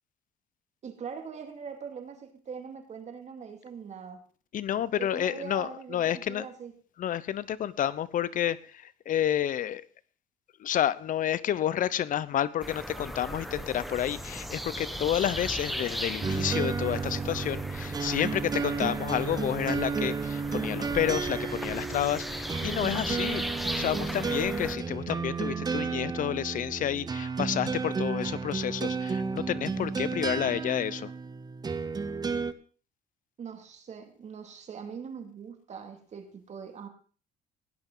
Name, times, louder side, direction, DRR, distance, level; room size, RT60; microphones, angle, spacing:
voice 1, 0.8-4.2 5.0-6.7 33.4-36.9, right 6 dB, 45° right, 5 dB, 2.3 m, -42 dB
voice 2, 4.5-6.5 7.0-9.8 10.6-23.4 23.7-31.1, left 10 dB, 50° left, 18 dB, 0.8 m, -30 dB
sound 1, 12.6-24.8, equal, ahead, 1.3 m, -37 dB
sound 2, 16.2-32.5, right 5 dB, 25° right, 0.9 m, -32 dB
16.5 x 10.5 x 3.9 m, 0.39 s
cardioid pair, 110°, 17 cm